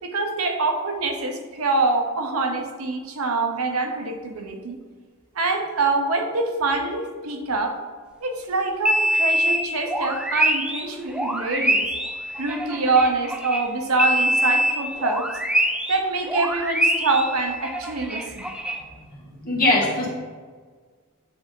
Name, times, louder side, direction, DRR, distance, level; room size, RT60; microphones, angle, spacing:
voice 1, 0.0-4.8 5.3-7.8 8.2-11.8 12.4-15.3 15.9-18.5, right 3 dB, 70° right, 5 dB, 0.8 m, -25 dB
sound 1, 8.9-13.7 14.0-16.0 16.3-18.8, equal, 5° right, 0.4 m, -24 dB
voice 2, 19.4-20.1, left 2 dB, 40° left, -4 dB, 1.8 m, -20 dB
8.6 x 3.8 x 3.7 m, 1.5 s
head